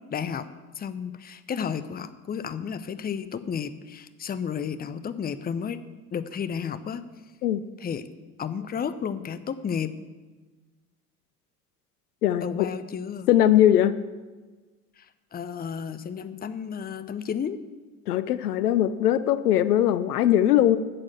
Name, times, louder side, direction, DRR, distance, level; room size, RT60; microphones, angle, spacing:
voice 1, 0.1-0.5 0.8-5.8 6.1-7.0 7.8-8.1 8.4-9.9 12.4-13.3 15.0-17.6, left 7 dB, 20° left, 13 dB, 0.7 m, -32 dB
voice 2, 12.2-12.7 13.3-13.9 18.1-20.8, left 11 dB, 80° left, 14 dB, 0.6 m, -20 dB
8.8 x 7.4 x 7.5 m, 1.3 s
figure-of-eight pair, 65°, 45 cm